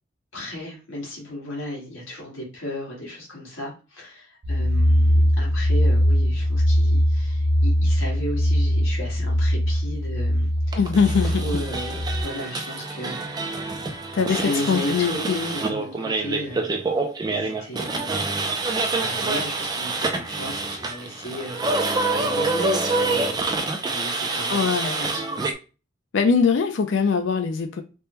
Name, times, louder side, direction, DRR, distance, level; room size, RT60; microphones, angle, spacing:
voice 1, 0.3-10.8 11.2-13.8 14.3-16.9 17.3-18.6 19.0-21.8 22.1-25.4, equal, 85° left, 1.5 m, -34 dB
sound 1, 4.4-12.2, equal, 65° right, 0.7 m, -21 dB
voice 2, 10.7-11.4 14.1-15.4 24.5-24.9 26.1-27.8, left 5 dB, 65° left, 0.4 m, -22 dB
sound 2, 10.7-25.5, right 3 dB, 20° right, 0.3 m, -27 dB
3.4 x 2.1 x 2.9 m
head